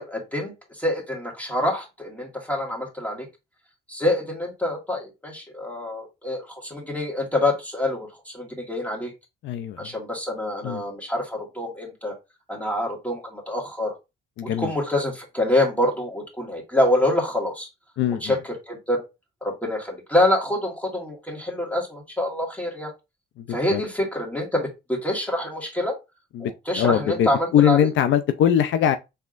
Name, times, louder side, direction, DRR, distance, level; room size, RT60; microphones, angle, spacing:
voice 1, 0.0-3.3 3.9-9.1 9.8-12.1 12.5-13.9 14.4-17.7 18.2-19.0 19.4-22.9 23.5-26.0 26.4-27.8, left 1 dB, 5° left, 2.0 m, -26 dB
voice 2, 9.4-9.9 10.6-10.8 14.4-14.7 18.0-18.3 23.4-23.8 26.3-26.5 26.8-29.0, left 10 dB, 75° left, 0.5 m, -21 dB
5.5 x 3.5 x 2.5 m
cardioid pair, 90°, 20 cm